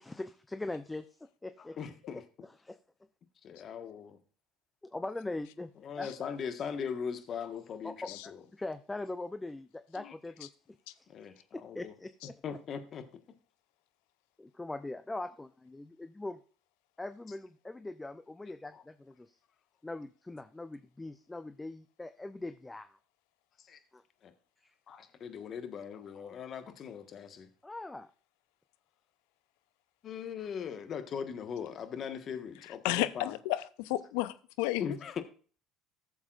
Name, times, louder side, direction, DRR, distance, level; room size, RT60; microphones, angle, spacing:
voice 1, 0.1-1.1 1.4-1.8 2.6-2.8 4.8-5.7 6.0-6.1 7.8-8.1 8.5-10.5 11.0-12.4 14.4-16.4 17.0-19.4 19.8-23.0 23.9-24.0 24.6-24.7 27.6-28.1, left 2 dB, 15° left, 11 dB, 0.6 m, -41 dB
voice 2, 1.6-2.2 3.4-4.2 5.8-8.4 10.0-10.1 11.1-11.9 12.4-13.1 18.7-18.8 23.6-23.8 24.2-24.3 24.9-27.5 30.0-33.4 34.8-35.2, left 7 dB, 50° left, 8 dB, 1.4 m, -40 dB
voice 3, 32.8-34.8, left 16 dB, 80° left, 15 dB, 0.6 m, -32 dB
14.5 x 7.1 x 2.5 m, 0.39 s
hypercardioid pair, 75°, 0 cm